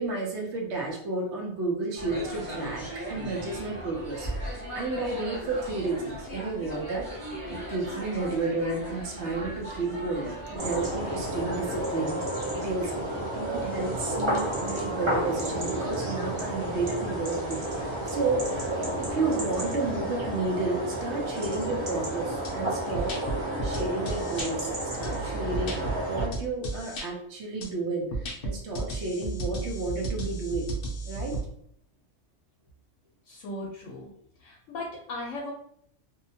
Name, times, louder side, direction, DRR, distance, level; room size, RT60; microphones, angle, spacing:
voice 1, 0.0-7.1 7.5-12.2 12.5-18.5 19.0-30.7 31.0-31.4, right 3 dB, 65° right, -1 dB, 0.9 m, -32 dB
sound 1, 2.0-11.8, equal, 15° right, 0.8 m, -38 dB
sound 2, 10.6-26.3, right 1 dB, 45° right, 0.4 m, -31 dB
sound 3, 22.4-22.5 22.9-24.5 25.0-27.1 27.6-27.7 28.1-31.4, right 2 dB, 60° left, 0.6 m, -33 dB
voice 2, 33.3-34.1 34.4-35.5, left 2 dB, 80° left, -2 dB, 0.9 m, -37 dB
2.7 x 2.1 x 2.6 m, 0.71 s
omnidirectional pair, 1.3 m